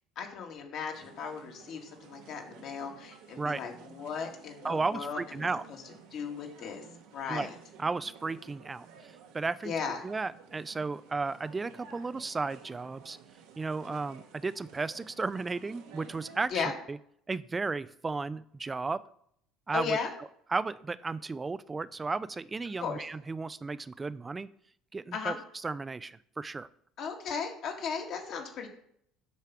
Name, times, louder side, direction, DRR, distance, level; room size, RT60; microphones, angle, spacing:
voice 1, 0.2-5.5 6.1-6.9 7.1-7.5 9.6-10.0 13.9-14.0 16.5-16.7 19.7-20.1 22.8-23.0 25.1-25.4 27.0-28.7, left 6 dB, 60° left, 2 dB, 1.7 m, -36 dB
sound 1, 0.9-16.5, right 7 dB, 80° right, 1.0 m, -53 dB
voice 2, 4.6-5.6 7.3-7.5 7.8-9.7 10.0-13.2 13.6-17.0 17.3-19.0 19.7-20.0 20.5-24.5 24.9-25.3 25.6-26.7, right 4 dB, 20° right, 17 dB, 0.3 m, -34 dB
8.1 x 3.4 x 5.8 m, 0.69 s
supercardioid pair, 95°, 0 cm